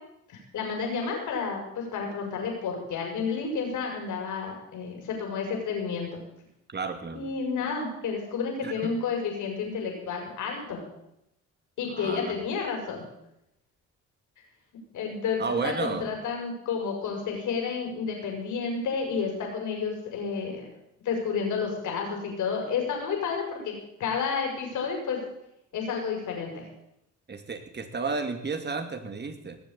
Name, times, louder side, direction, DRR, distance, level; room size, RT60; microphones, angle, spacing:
voice 1, 0.3-6.2 7.1-10.8 11.8-13.1 14.9-20.7 21.0-23.7 24.0-25.2 25.7-26.7, left 5 dB, 75° left, 1 dB, 5.9 m, -31 dB
voice 2, 6.7-7.2 8.6-8.9 11.8-12.4 15.4-16.1 27.3-29.6, right 4 dB, 35° right, 7 dB, 2.5 m, -32 dB
19.0 x 7.4 x 8.9 m, 0.82 s
cardioid pair, 90°, 30 cm